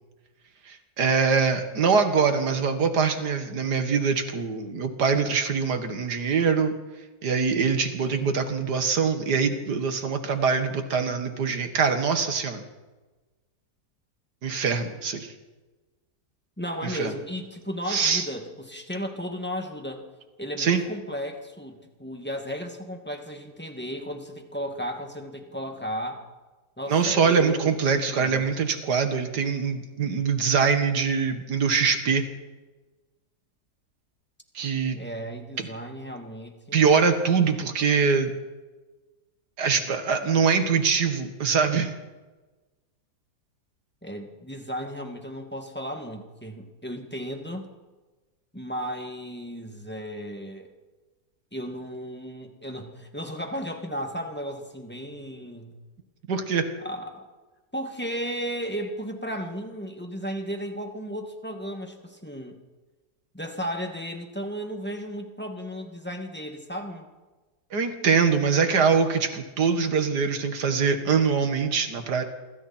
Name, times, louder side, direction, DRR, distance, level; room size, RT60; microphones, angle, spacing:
voice 1, 0.7-6.8 7.2-12.6 14.4-15.3 16.8-17.1 17.9-18.3 20.6-20.8 26.9-32.3 34.5-35.0 36.7-38.3 39.6-41.9 56.3-56.7 67.7-72.2, right 5 dB, 80° right, 7 dB, 2.4 m, -23 dB
voice 2, 16.6-20.1 20.4-26.3 26.8-28.4 34.9-36.8 44.0-47.7 48.5-50.7 51.5-55.8 56.8-57.3 57.7-62.6 63.3-67.1, equal, 5° left, 3 dB, 2.3 m, -35 dB
27.0 x 23.5 x 4.5 m, 1.2 s
omnidirectional pair, 1.7 m